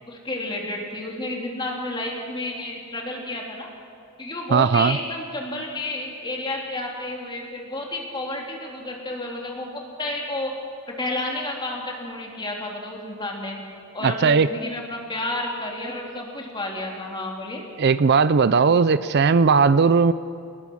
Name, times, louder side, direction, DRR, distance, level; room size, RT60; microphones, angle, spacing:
voice 1, 0.1-3.7 4.2-10.5 11.0-13.6 13.9-17.6, left 2 dB, 20° left, -1 dB, 3.4 m, -31 dB
voice 2, 4.5-5.0 14.0-14.5 17.8-20.1, right 5 dB, 50° right, 15 dB, 0.4 m, -17 dB
27.5 x 20.0 x 6.3 m, 2.4 s
head